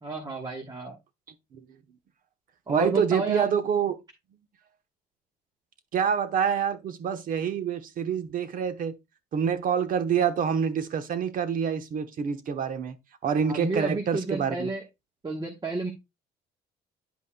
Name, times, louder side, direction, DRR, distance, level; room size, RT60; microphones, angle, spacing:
voice 1, 0.0-1.0 2.7-3.5 13.4-14.8 15.2-15.9, right 3 dB, 25° right, 1.2 m, -31 dB
voice 2, 2.7-4.0 5.9-9.0 9.3-13.0 13.2-14.7, right 7 dB, 55° right, 1.0 m, -26 dB
10.0 x 5.4 x 2.2 m
cardioid pair, 110°, 17 cm